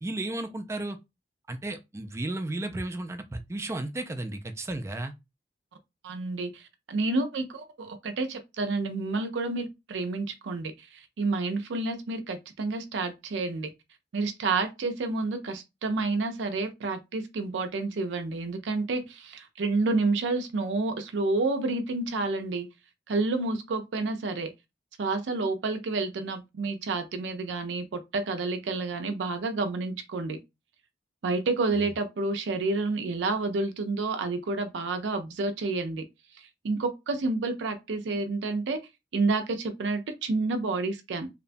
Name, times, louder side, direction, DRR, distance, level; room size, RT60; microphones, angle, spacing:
voice 1, 0.0-1.0 1.5-5.1 31.8-31.9, right 2 dB, 15° right, 0.3 m, -34 dB
voice 2, 6.0-13.7 14.1-22.7 23.1-24.5 25.0-30.4 31.2-36.0 36.4-38.8 39.1-41.3, right 3 dB, 85° right, 0.4 m, -29 dB
2.8 x 2.2 x 2.5 m
head